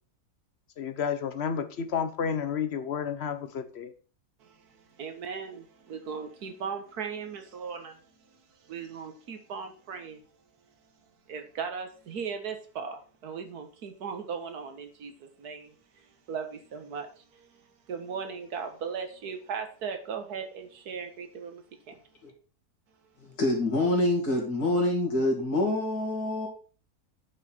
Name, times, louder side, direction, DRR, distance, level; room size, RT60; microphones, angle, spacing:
voice 1, 0.8-3.9, left 7 dB, 50° left, 1.0 m, -31 dB
voice 2, 4.4-8.0 8.3-10.2 11.3-17.5 17.9-22.0, right 6 dB, 85° right, 1.8 m, -38 dB
voice 3, 23.2-26.5, left 1 dB, 80° left, 3.0 m, -26 dB
9.8 x 5.5 x 4.3 m
omnidirectional pair, 1.6 m